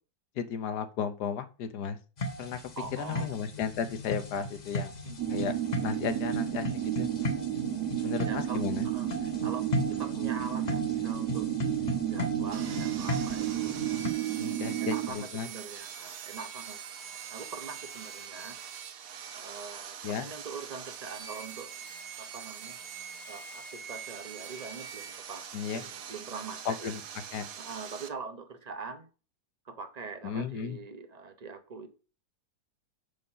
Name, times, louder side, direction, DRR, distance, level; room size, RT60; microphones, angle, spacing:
voice 1, 0.4-2.0 2.4-2.6 3.0-4.9 5.3-6.7 7.0-7.1 8.0-8.9 14.4-15.5 20.0-20.3 25.5-25.8 26.6-27.0 27.3-27.5 30.2-30.8, left 7 dB, 80° left, 1.4 m, -34 dB
sound 1, 2.2-14.1, left 1 dB, 35° left, 0.8 m, -36 dB
voice 2, 2.8-3.5 5.0-5.5 8.0-11.5 11.9-13.8 14.8-16.8 17.3-18.6 19.3-21.7 22.2-22.8 23.3-25.5 25.7-26.9 27.6-29.1 29.7-31.9, right 4 dB, 35° right, 0.7 m, -43 dB
sound 2, 5.2-15.1, right 12 dB, 85° right, 1.3 m, -32 dB
Sawing, 12.5-28.1, right 7 dB, 65° right, 1.2 m, -43 dB
6.7 x 5.2 x 5.6 m
omnidirectional pair, 1.7 m